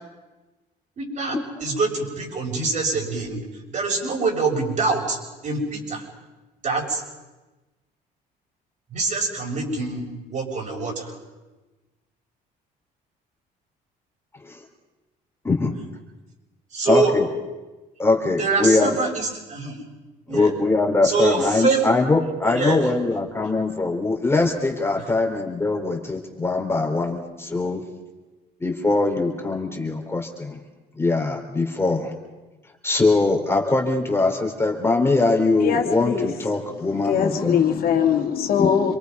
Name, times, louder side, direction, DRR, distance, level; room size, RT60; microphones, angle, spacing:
voice 1, 1.0-3.4 3.7-5.2 5.4-6.0 6.6-7.0 8.9-10.0 10.3-11.1 16.7-17.1 18.4-19.8 20.3-20.5 21.0-21.8 22.5-22.8, right 4 dB, 45° right, 0 dB, 6.6 m, -24 dB
voice 2, 16.9-17.2 18.0-18.9 20.3-27.8 28.6-30.6 31.0-32.1 32.8-37.6 38.6-38.7, left 3 dB, 15° left, 2 dB, 3.6 m, -22 dB
voice 3, 35.6-36.3 37.0-39.0, left 8 dB, 60° left, 3 dB, 2.5 m, -21 dB
27.5 x 23.0 x 5.4 m, 1.1 s
cardioid pair, 110°, 17 cm